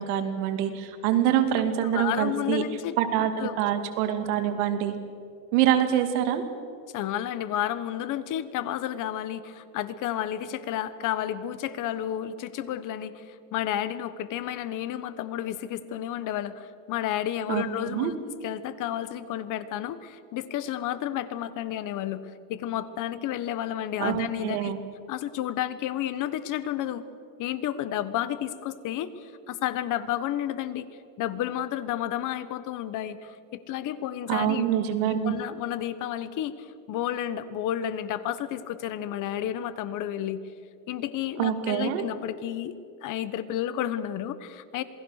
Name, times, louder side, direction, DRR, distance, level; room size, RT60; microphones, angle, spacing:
voice 1, 0.0-2.6 3.0-4.9 5.5-6.4 17.5-17.6 17.9-18.1 24.0-24.8 34.3-35.3 41.4-42.0, right 10 dB, 80° right, 7 dB, 2.5 m, -25 dB
voice 2, 1.8-3.0 3.4-3.6 6.9-18.2 18.4-24.7 25.1-27.0 27.4-30.9 31.2-34.6 35.1-40.4 40.9-44.8, left 11 dB, 45° left, 14 dB, 1.2 m, -31 dB
27.5 x 19.5 x 6.5 m, 2.5 s
cardioid pair, 155°, 44 cm